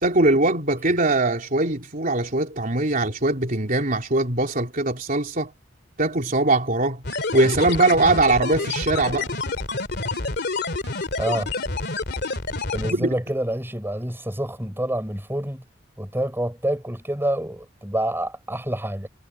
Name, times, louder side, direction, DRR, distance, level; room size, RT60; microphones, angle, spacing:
voice 1, 0.0-5.5 6.0-7.0 7.3-9.3 12.9-13.1, right 2 dB, 45° right, 3.6 m, -21 dB
sound 1, 7.0-12.9, left 3 dB, 60° left, 2.7 m, -28 dB
voice 2, 11.2-11.5 12.7-15.6 16.0-19.1, right 1 dB, 10° right, 6.4 m, -27 dB
head